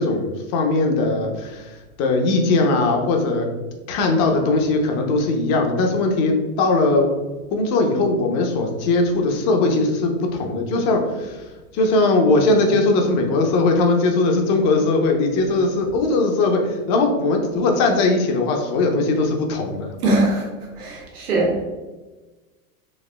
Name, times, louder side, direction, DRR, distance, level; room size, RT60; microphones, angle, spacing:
voice 1, 0.0-1.7 2.0-3.5 3.9-7.1 7.5-11.4 11.7-19.9, left 2 dB, 40° left, 2 dB, 0.7 m, -19 dB
voice 2, 20.0-20.5 20.8-21.6, right 2 dB, 85° right, -2 dB, 1.3 m, -20 dB
4.2 x 2.7 x 2.2 m, 1.2 s
hypercardioid pair, 120°, 44 cm